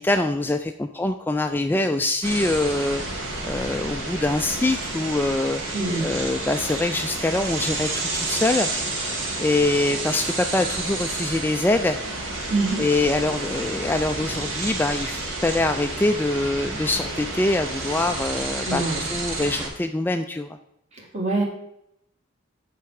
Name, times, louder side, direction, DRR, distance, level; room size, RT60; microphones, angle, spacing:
voice 1, 0.0-3.0 3.4-5.6 6.0-8.7 9.4-12.0 12.8-20.6, left 2 dB, 10° left, 6 dB, 0.3 m, -24 dB
sound 1, 2.2-19.7, right 2 dB, 75° right, 2.0 m, -30 dB
voice 2, 12.5-12.8 18.7-19.0 20.9-21.4, right 2 dB, 35° right, 0 dB, 2.0 m, -24 dB
12.5 x 4.5 x 4.8 m, 0.80 s
head